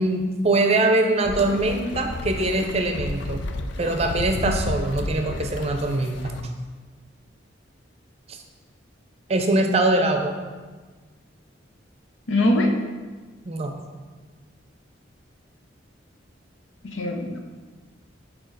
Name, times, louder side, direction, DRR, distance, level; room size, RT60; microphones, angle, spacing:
voice 1, 0.0-3.4 3.8-6.3 8.3-8.4 9.3-10.4 13.5-13.7, right 2 dB, 35° right, 4 dB, 0.5 m, -22 dB
sound 1, 1.2-6.4, left 2 dB, 70° left, 0.4 m, -31 dB
voice 2, 12.3-12.7 16.8-17.4, left 1 dB, 90° left, 3 dB, 0.8 m, -22 dB
6.3 x 4.5 x 4.0 m, 1.4 s
head